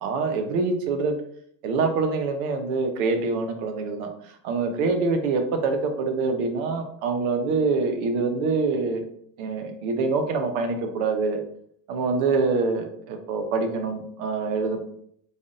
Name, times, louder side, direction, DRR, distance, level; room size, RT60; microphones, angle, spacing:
voice 1, 0.0-1.2 1.6-4.1 4.4-9.0 9.4-11.4 11.9-14.8, right 4 dB, 60° right, 6 dB, 0.9 m, -25 dB
4.1 x 3.5 x 2.5 m, 0.65 s
supercardioid pair, 160°, 50 cm